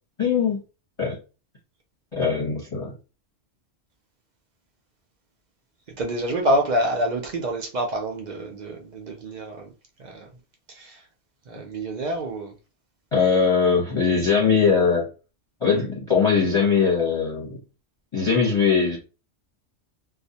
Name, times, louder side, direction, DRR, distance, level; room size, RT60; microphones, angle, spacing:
voice 1, 0.2-0.6 1.0-1.2 2.1-2.9 13.1-15.1 15.6-17.6 18.1-19.0, left 5 dB, 30° left, 0.8 m, -21 dB
voice 2, 6.0-9.7 10.0-10.3 10.7-11.0 11.5-12.5, right 1 dB, 60° right, 0.5 m, -27 dB
2.3 x 2.1 x 2.7 m
omnidirectional pair, 1.2 m